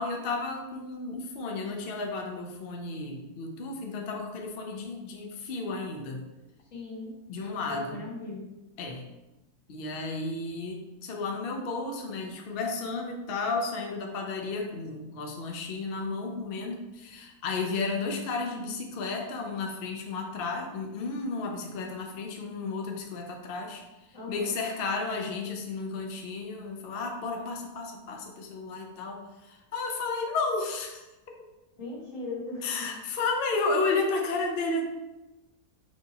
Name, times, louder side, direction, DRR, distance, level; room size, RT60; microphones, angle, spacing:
voice 1, 0.0-6.2 7.3-8.0 8.8-9.0 9.7-23.8 24.3-31.0 32.6-34.8, left 3 dB, 70° left, 2 dB, 0.5 m, -33 dB
voice 2, 6.7-8.5 24.1-24.6 31.8-32.9, left 2 dB, 55° left, -5 dB, 1.7 m, -39 dB
4.8 x 2.7 x 4.0 m, 1.0 s
omnidirectional pair, 1.7 m